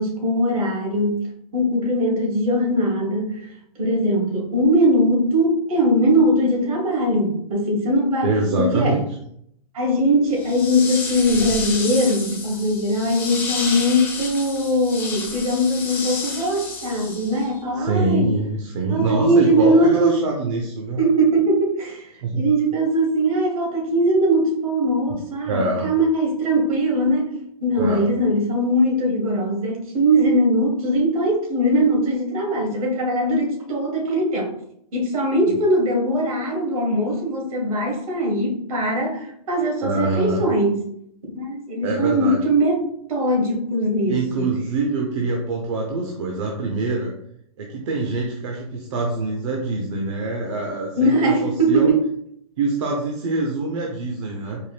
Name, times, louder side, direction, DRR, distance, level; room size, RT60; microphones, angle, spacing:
voice 1, 0.0-3.5 3.8-8.3 8.6-9.0 9.7-18.3 18.9-20.2 21.0-27.3 27.6-34.5 34.9-40.8 41.3-44.5 51.0-52.1, equal, 70° right, 1.4 m, -20 dB
voice 2, 8.2-9.0 17.7-21.0 22.2-22.5 25.5-25.9 27.8-28.0 35.4-35.6 39.8-40.4 41.8-42.5 44.1-47.1 47.6-51.9 52.6-54.6, right 3 dB, 55° right, 0.7 m, -24 dB
sound 1, 10.3-17.6, left 4 dB, 10° left, 0.5 m, -31 dB
4.5 x 2.1 x 3.3 m
hypercardioid pair, 160°, 19 cm